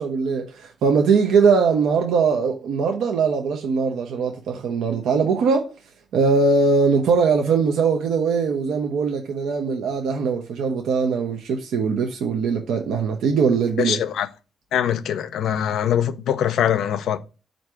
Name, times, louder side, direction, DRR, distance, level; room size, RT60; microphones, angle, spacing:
voice 1, 0.0-5.7 6.1-14.0, right 5 dB, 85° right, 0.5 m, -21 dB
voice 2, 13.8-14.3 14.7-17.2, left 9 dB, 80° left, 0.4 m, -22 dB
4.4 x 2.6 x 4.6 m
cardioid pair, 110°, 0 cm